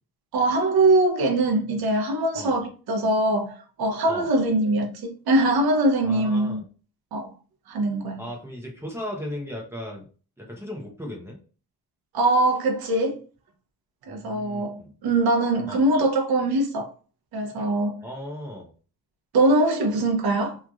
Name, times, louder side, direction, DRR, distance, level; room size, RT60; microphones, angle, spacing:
voice 1, 0.3-6.6 7.1-7.3 7.7-8.2 12.1-13.2 14.1-16.9 17.3-18.0 19.3-20.6, right 2 dB, 70° right, 0.7 m, -22 dB
voice 2, 6.0-6.6 8.2-10.1 10.4-11.4 14.1-14.9 15.7-15.8 18.0-18.7, left 1 dB, 5° right, 0.6 m, -36 dB
3.0 x 2.4 x 2.3 m
cardioid pair, 160°, 38 cm